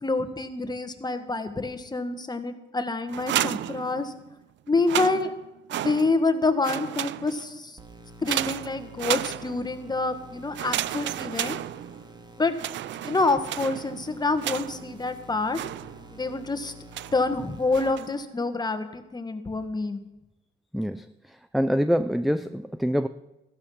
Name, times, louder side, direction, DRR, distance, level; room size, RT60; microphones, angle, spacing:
voice 1, 0.0-4.1 4.7-5.3 5.7-7.8 8.2-11.6 12.4-12.6 13.0-15.6 16.1-16.7 17.1-20.1, left 3 dB, 20° left, 9 dB, 1.5 m, -27 dB
sound 1, 3.1-4.3 4.7-6.3 6.6-7.6 8.3-9.8 10.5-12.2 12.5-15.0 15.5-16.3 16.9-17.3 17.7-18.2, right 13 dB, 65° right, 0.5 m, -32 dB
sound 2, 7.8-17.8, right 1 dB, 20° right, 2.0 m, -48 dB
voice 2, 20.7-21.1 21.5-23.1, equal, ahead, 12 dB, 0.5 m, -25 dB
15.0 x 12.5 x 5.6 m, 0.96 s
cardioid pair, 90°, 20 cm